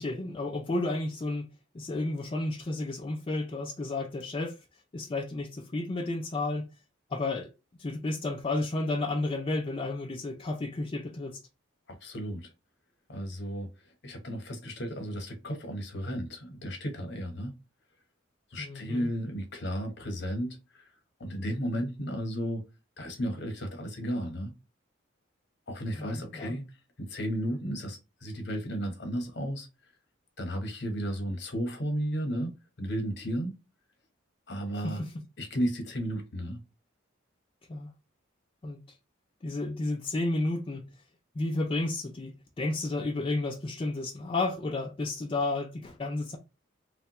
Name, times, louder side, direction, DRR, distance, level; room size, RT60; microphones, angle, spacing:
voice 1, 0.0-1.5 1.7-4.6 4.9-6.7 7.1-7.5 7.8-11.4 18.6-19.1 26.0-26.6 34.8-35.1 37.7-37.9 38.6-38.8 39.4-40.9 41.4-46.4, left 2 dB, 25° left, 0.4 m, -32 dB
voice 2, 11.9-12.5 13.1-13.7 14.0-17.5 18.5-20.9 21.2-22.6 23.0-24.5 25.7-26.7 27.0-29.7 30.4-33.6 34.5-35.0 35.4-36.6, equal, 60° left, 1.0 m, -34 dB
3.2 x 2.2 x 2.8 m
head